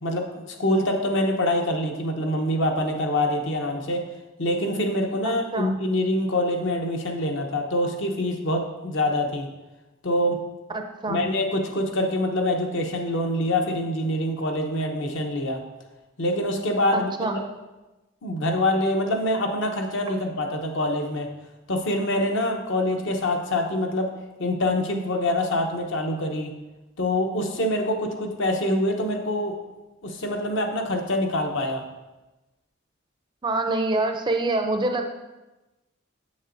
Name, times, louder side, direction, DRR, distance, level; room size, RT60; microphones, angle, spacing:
voice 1, 0.0-4.0 4.4-9.5 10.0-10.4 11.1-15.6 16.2-17.5 18.2-21.3 21.7-24.1 24.4-26.5 27.0-29.6 30.0-31.8, left 1 dB, 60° left, 3 dB, 0.8 m, -25 dB
voice 2, 5.2-5.7 10.7-11.2 16.9-17.4 33.4-35.1, right 2 dB, 20° right, 5 dB, 0.4 m, -26 dB
7.3 x 7.0 x 2.6 m, 1.1 s
head